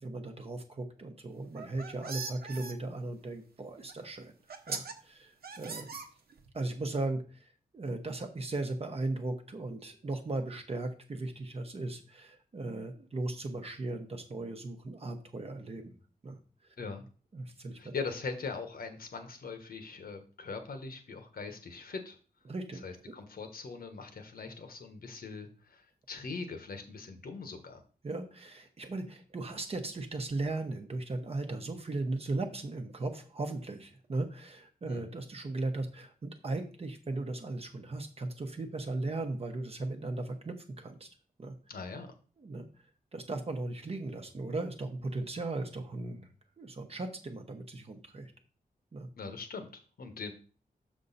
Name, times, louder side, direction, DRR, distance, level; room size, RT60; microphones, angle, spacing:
voice 1, 0.0-4.3 4.7-5.9 6.5-7.5 7.7-15.9 16.2-16.4 17.3-17.8 22.5-23.1 28.0-41.1 41.4-41.5 42.4-42.7 43.1-46.3 46.6-48.3 48.9-49.1, right 2 dB, 40° right, 5 dB, 0.9 m, -37 dB
sound 1, 1.4-2.7 3.9-4.0 4.5-4.9 5.4-6.5, right 4 dB, 80° right, 0.9 m, -40 dB
voice 2, 16.8-17.1 17.8-22.2 22.8-27.8 34.8-35.1 41.7-42.1 49.2-50.3, left 4 dB, 70° left, 7 dB, 1.2 m, -41 dB
6.7 x 6.2 x 4.1 m, 0.39 s
wide cardioid pair, 170°, 16 cm